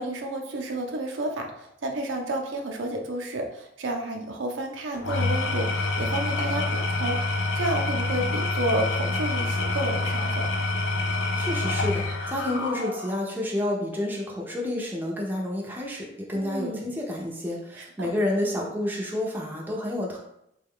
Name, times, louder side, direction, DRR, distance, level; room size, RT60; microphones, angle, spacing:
voice 1, 0.0-10.6 16.3-16.9 17.8-18.1, right 1 dB, 80° right, 2 dB, 0.5 m, -31 dB
Engine / Tools, 4.9-13.3, left 2 dB, 90° left, 0.5 m, -27 dB
voice 2, 11.3-20.2, left 1 dB, 10° right, -2 dB, 0.5 m, -29 dB
3.3 x 2.3 x 3.5 m, 0.78 s
head